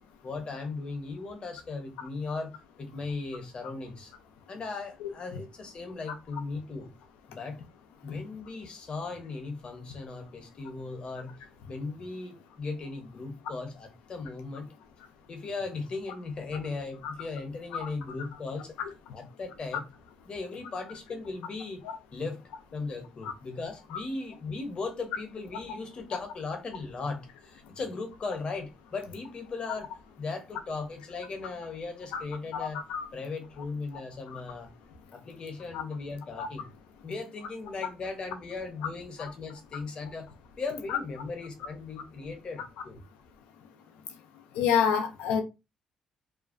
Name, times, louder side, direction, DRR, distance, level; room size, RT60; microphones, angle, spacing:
voice 1, 0.2-2.5 2.8-4.1 4.5-6.9 7.3-7.6 8.0-11.3 11.7-14.7 15.3-18.8 19.1-19.8 20.2-21.9 22.1-29.9 30.2-34.7 35.1-36.7 37.0-40.3 40.6-43.0, left 3 dB, 50° left, 0.8 m, -37 dB
voice 2, 32.5-33.0 34.3-34.4 35.7-35.8 36.4-36.5 40.9-41.0 44.6-45.4, left 7 dB, 80° left, 0.5 m, -28 dB
2.5 x 2.2 x 2.5 m
supercardioid pair, 55°, 2 cm